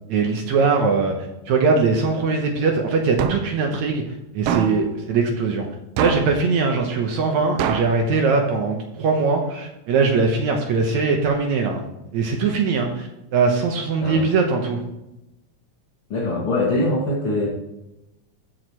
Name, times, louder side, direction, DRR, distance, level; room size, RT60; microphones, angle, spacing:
voice 1, 0.1-1.1 1.5-5.7 6.0-14.8, right 4 dB, 70° right, 2 dB, 2.2 m, -21 dB
sound 1, 3.2-3.6 4.5-4.9 6.0-6.4 7.6-8.0, right 7 dB, 90° right, 1.3 m, -24 dB
voice 2, 16.1-17.5, left 2 dB, 50° left, -4 dB, 2.5 m, -22 dB
14.0 x 6.5 x 3.0 m, 0.92 s
omnidirectional pair, 3.6 m